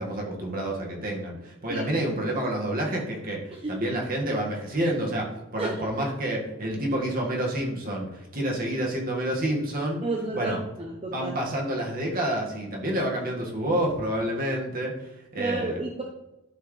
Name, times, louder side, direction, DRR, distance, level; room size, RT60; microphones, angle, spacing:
voice 1, 0.0-10.0 10.3-10.6 11.1-15.8, right 1 dB, 45° right, -1 dB, 1.8 m, -29 dB
voice 2, 5.6-6.1 10.0-11.3 15.4-16.0, right 2 dB, 25° right, 0 dB, 0.8 m, -32 dB
12.5 x 4.8 x 3.2 m, 0.95 s
head